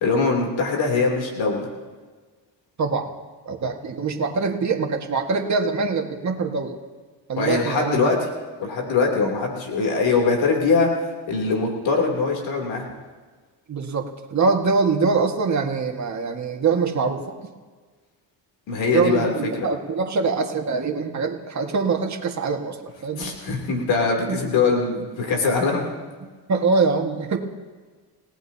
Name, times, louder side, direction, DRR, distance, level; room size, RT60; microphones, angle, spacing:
voice 1, 0.0-1.7 7.4-8.2 8.6-10.9 11.3-12.8 18.7-19.7 23.2-25.8, left 4 dB, 80° left, 0 dB, 3.2 m, -22 dB
voice 2, 2.8-3.1 3.5-6.8 7.3-8.0 13.7-17.2 18.9-22.8 23.0-23.4 24.3-24.4 26.5-27.4, right 4 dB, 40° right, 3 dB, 1.7 m, -23 dB
29.0 x 17.5 x 2.8 m, 1.4 s
cardioid pair, 125°, 45 cm